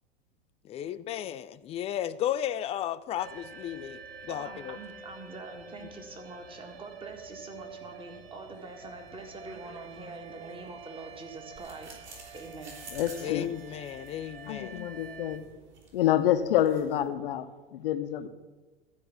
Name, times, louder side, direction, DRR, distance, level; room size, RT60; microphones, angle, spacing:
voice 1, 0.6-4.8 13.2-14.9, left 11 dB, 20° left, 0.4 m, -34 dB
sound 1, 3.2-15.4, right 4 dB, 80° right, 1.0 m, -48 dB
voice 2, 4.3-12.8 13.2-13.5, right 3 dB, 15° right, 1.7 m, -44 dB
sound 2, 11.6-17.1, right 3 dB, 40° right, 4.2 m, -51 dB
voice 3, 12.9-13.5 14.5-15.4 15.9-18.3, left 11 dB, 65° left, 0.9 m, -27 dB
13.5 x 5.2 x 7.2 m
figure-of-eight pair, 90°, 30 cm